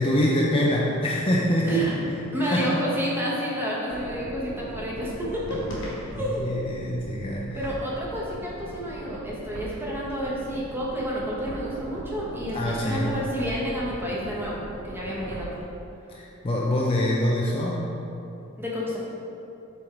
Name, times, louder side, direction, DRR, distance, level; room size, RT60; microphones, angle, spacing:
voice 1, 0.0-1.9 2.4-2.8 6.1-7.6 12.5-13.2 16.1-17.9, left 1 dB, 25° left, -3 dB, 0.5 m, -25 dB
voice 2, 1.6-2.0 2.3-5.6 6.1-6.6 7.5-15.6 18.6-19.0, equal, 10° right, -6 dB, 1.1 m, -30 dB
sound 1, 1.7-2.4 5.5-6.5, left 1 dB, 65° left, 1.4 m, -37 dB
sound 2, 3.9-15.6, right 2 dB, 75° right, 0.4 m, -39 dB
7.2 x 3.5 x 4.5 m, 2.8 s
head